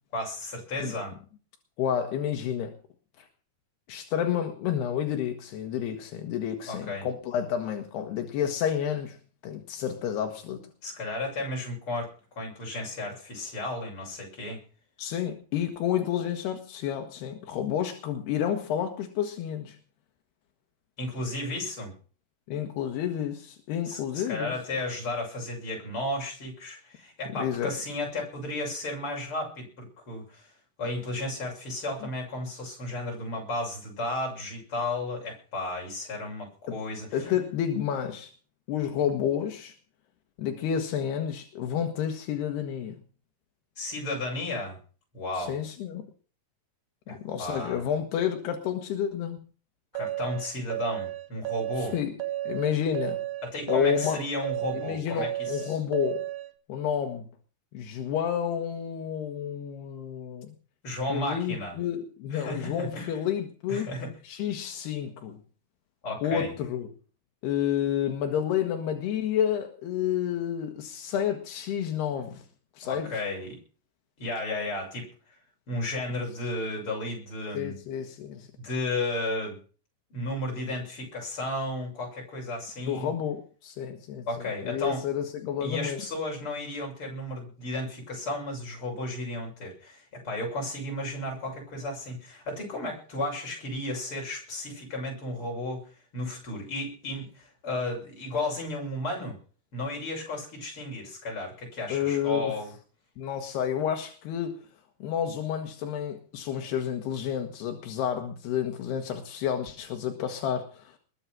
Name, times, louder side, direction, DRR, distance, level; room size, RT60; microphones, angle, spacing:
voice 1, 0.1-1.2 6.7-7.1 10.8-14.6 21.0-21.9 23.9-30.5 30.8-37.3 43.8-44.8 45.1-45.6 47.1-47.9 49.9-52.0 53.4-55.8 60.8-61.8 62.3-63.2 63.7-64.1 66.0-66.5 72.8-73.6 74.2-75.4 75.7-77.7 78.6-79.6 80.1-83.1 84.3-85.1 85.6-99.4 99.7-102.7, left 1 dB, 30° left, 0 dB, 7.5 m, -34 dB
voice 2, 1.8-2.8 3.2-3.3 3.9-9.2 9.4-10.6 15.0-19.8 22.5-24.5 27.3-27.7 36.7-36.8 37.1-38.3 38.7-39.8 40.4-43.0 45.4-46.1 47.1-49.4 51.8-52.2 52.5-53.2 53.7-54.2 54.7-56.3 56.7-57.3 57.7-60.5 61.1-63.9 64.2-65.4 66.2-66.9 67.4-72.5 72.8-73.2 77.5-78.5 82.8-86.0 101.9-102.6 103.2-104.6 105.0-111.0, left 9 dB, 80° left, 4 dB, 3.5 m, -30 dB
sound 1, 49.9-56.5, right 14 dB, 65° right, 3.3 m, -33 dB
21.0 x 8.6 x 6.0 m, 0.40 s
omnidirectional pair, 4.6 m